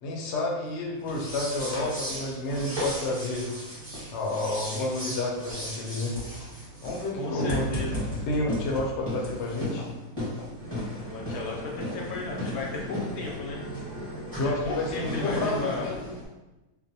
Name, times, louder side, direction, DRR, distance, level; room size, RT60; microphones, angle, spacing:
voice 1, 0.0-3.5 4.1-6.2 6.8-7.8 8.3-9.9 14.4-15.6 15.8-16.1, left 2 dB, 65° left, -2 dB, 0.7 m, -30 dB
sound 1, 1.0-16.3, equal, 10° right, 0.8 m, -35 dB
voice 2, 7.1-8.2 11.1-13.6 14.4-15.9, left 3 dB, 90° left, -2 dB, 1.1 m, -35 dB
2.5 x 2.0 x 2.6 m, 1.0 s
omnidirectional pair, 1.5 m